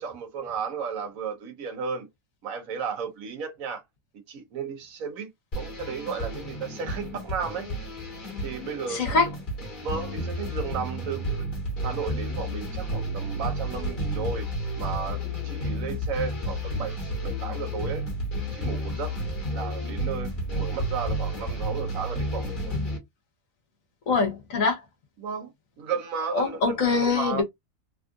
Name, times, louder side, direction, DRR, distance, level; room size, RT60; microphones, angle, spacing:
voice 1, 0.0-2.1 2.4-3.8 4.3-5.3 5.6-7.7 8.4-9.1 9.8-11.5 11.8-14.5 14.8-18.0 18.5-19.2 19.5-22.8 25.2-25.5 25.8-27.4, right 6 dB, 70° right, 1.2 m, -34 dB
sound 1, 5.5-23.0, equal, 35° left, 1.4 m, -31 dB
voice 2, 8.9-9.3 24.1-24.8 26.3-27.4, left 4 dB, 65° left, 1.3 m, -24 dB
3.4 x 2.4 x 2.5 m
omnidirectional pair, 1.5 m